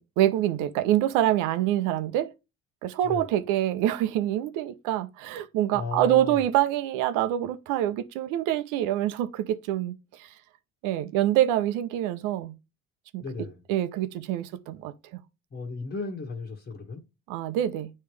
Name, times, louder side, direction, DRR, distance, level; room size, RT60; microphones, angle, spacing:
voice 1, 0.0-2.3 2.8-10.3 10.8-12.5 13.1-13.2 13.7-15.2 17.3-17.9, right 12 dB, 80° right, 0.7 m, -26 dB
voice 2, 5.7-6.4 13.2-13.6 15.5-17.0, left 4 dB, 35° left, 1.5 m, -35 dB
9.5 x 3.2 x 3.2 m
supercardioid pair, 70°, 31 cm